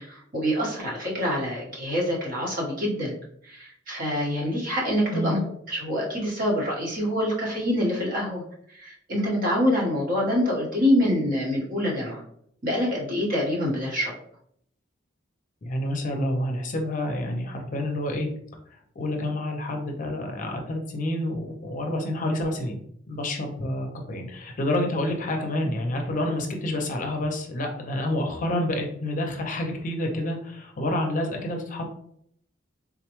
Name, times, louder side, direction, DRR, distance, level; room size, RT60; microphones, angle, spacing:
voice 1, 0.0-3.1 3.4-5.4 5.7-8.4 8.7-12.2 12.6-14.1, equal, 45° right, -3 dB, 1.2 m, -26 dB
voice 2, 15.6-18.3 18.7-22.8 23.1-31.9, left 1 dB, 45° left, 3 dB, 0.5 m, -28 dB
3.7 x 2.2 x 3.0 m, 0.67 s
head